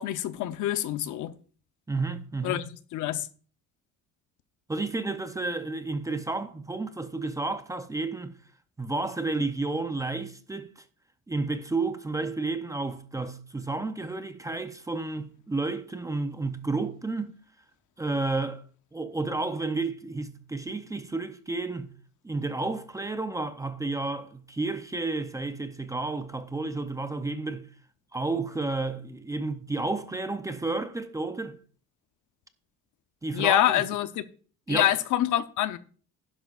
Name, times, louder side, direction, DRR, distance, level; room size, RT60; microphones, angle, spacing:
voice 1, 0.0-1.3 2.4-3.3 33.3-34.2 34.7-35.8, left 13 dB, 65° left, 0.8 m, -26 dB
voice 2, 1.9-2.6 4.7-8.4 8.8-10.8 11.3-17.3 18.0-18.6 18.9-21.9 22.2-27.7 28.1-31.6 33.2-33.6 34.7-34.9, right 3 dB, 10° right, 0.6 m, -31 dB
11.5 x 10.5 x 2.5 m
cardioid pair, 165°, 33 cm